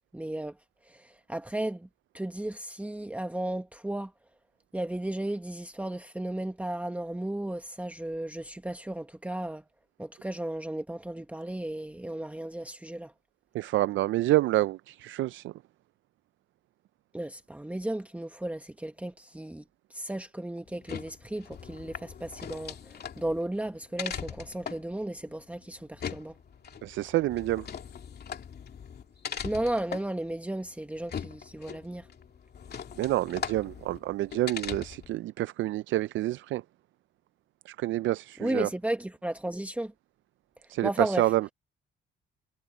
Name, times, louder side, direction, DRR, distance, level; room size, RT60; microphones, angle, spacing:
voice 1, 0.1-0.6 0.8-1.9 2.1-4.1 4.7-9.6 10.0-13.1 17.1-19.6 19.9-26.4 29.4-32.1 38.4-39.9 40.6-41.3, right 1 dB, 5° right, 1.4 m, -34 dB
voice 2, 13.5-15.5 26.8-27.7 33.0-36.6 37.7-38.7 40.7-41.5, right 16 dB, 75° right, 0.4 m, -28 dB
sound 1, 20.7-35.2, left 7 dB, 55° left, 2.8 m, -41 dB
cardioid pair, 90°, 20 cm